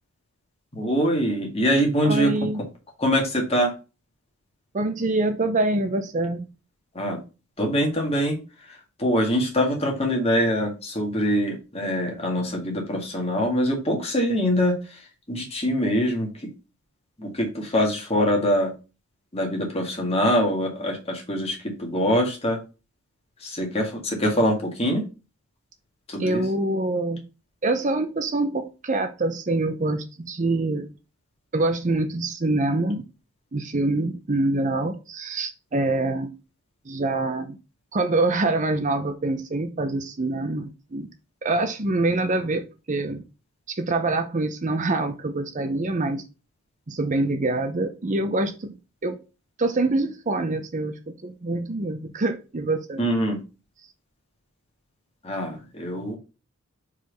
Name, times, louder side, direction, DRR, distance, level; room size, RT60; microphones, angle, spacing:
voice 1, 0.7-2.3 3.0-3.7 6.9-7.2 7.6-8.4 8.7-15.0 15.3-16.5 17.2-18.7 19.3-22.6 23.4-25.0 26.1-26.5 53.0-53.4 55.2-56.2, equal, 25° left, 1 dB, 1.9 m, -24 dB
voice 2, 2.0-2.6 4.7-6.5 26.2-27.2 27.6-30.9 31.5-33.0 33.5-36.3 36.9-37.6 37.9-41.1 41.4-43.2 43.7-46.2 46.9-48.8 49.0-49.2 49.6-53.0, right 2 dB, 35° right, 8 dB, 0.6 m, -25 dB
4.9 x 4.5 x 5.2 m, 0.31 s
head